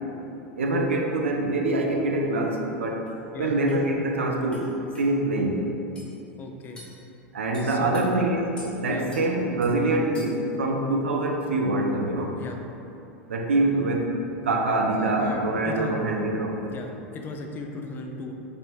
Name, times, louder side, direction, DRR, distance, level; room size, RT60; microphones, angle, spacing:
voice 1, 0.6-3.0 3.4-4.7 5.0-5.6 7.3-12.4 13.3-14.1 14.4-16.6, right 2 dB, 90° right, 1 dB, 0.5 m, -25 dB
sound 1, 3.1-3.2 3.7-3.8 4.5-4.7 4.9-5.1 6.0-6.1 6.8-7.0 7.5-8.0 8.6-8.7 9.1-9.3 9.6-9.7 10.1-10.5, left 1 dB, 15° left, 1.2 m, -46 dB
voice 2, 6.4-6.8 7.6-8.0 8.8-9.1 12.4-12.6 14.9-16.0 16.7-18.3, left 3 dB, 30° left, 3 dB, 0.4 m, -37 dB
3.3 x 2.9 x 4.4 m, 2.9 s
hypercardioid pair, 100°, 7 cm